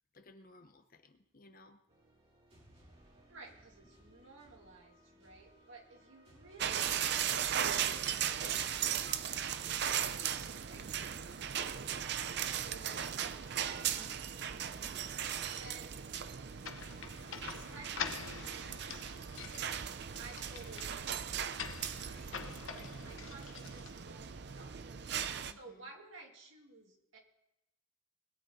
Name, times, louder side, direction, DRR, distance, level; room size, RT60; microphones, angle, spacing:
voice 1, 0.1-1.8 10.7-11.2 12.0-12.1 13.9-14.1 14.7-15.1 22.2-23.2 25.4-25.9, left 2 dB, 45° left, 8 dB, 0.9 m, -59 dB
sound 1, 1.9-13.5, right 1 dB, 30° right, 3.3 m, -62 dB
voice 2, 3.3-10.2 10.6-14.3 15.5-16.1 17.5-18.8 20.2-21.6 22.0-22.3 22.7-24.9 25.4-27.2, right 3 dB, 70° right, 1 dB, 2.5 m, -56 dB
sound 2, 6.6-25.5, right 9 dB, 55° right, 0.5 m, -37 dB
sound 3, 16.6-24.3, left 6 dB, 75° left, 0.9 m, -46 dB
20.5 x 9.9 x 4.2 m, 0.88 s
head